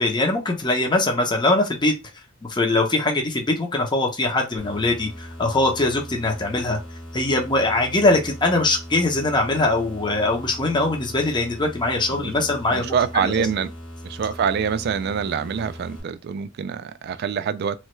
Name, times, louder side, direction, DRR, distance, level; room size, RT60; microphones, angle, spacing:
voice 1, 0.0-1.9 2.5-6.8 7.1-12.9 13.2-13.5, left 2 dB, 20° left, 0.6 m, -22 dB
sound 1, 4.6-16.0, equal, 75° left, 1.4 m, -39 dB
voice 2, 12.7-13.7 14.0-17.8, right 7 dB, 55° right, 0.3 m, -25 dB
3.1 x 2.3 x 3.0 m
head